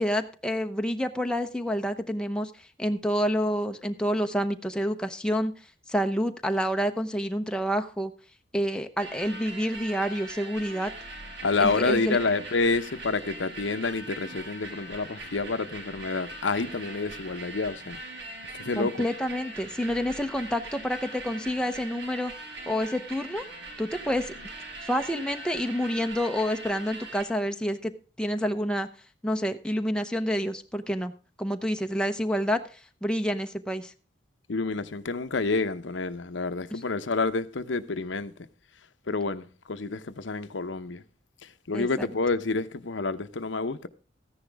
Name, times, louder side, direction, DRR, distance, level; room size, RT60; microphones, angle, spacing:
voice 1, 0.0-5.5 5.9-8.1 8.5-10.9 11.6-12.2 18.8-22.3 22.7-23.4 23.8-24.3 24.8-27.9 28.2-28.9 29.2-31.1 31.4-33.9 36.7-36.8 41.7-42.1, equal, 5° left, 0.8 m, -28 dB
sound 1, 9.0-27.2, right 2 dB, 70° right, 4.8 m, -41 dB
voice 2, 11.4-18.0 18.4-19.1 34.5-38.3 39.1-41.0 41.4-43.9, left 3 dB, 80° left, 0.8 m, -28 dB
14.0 x 10.5 x 3.5 m
head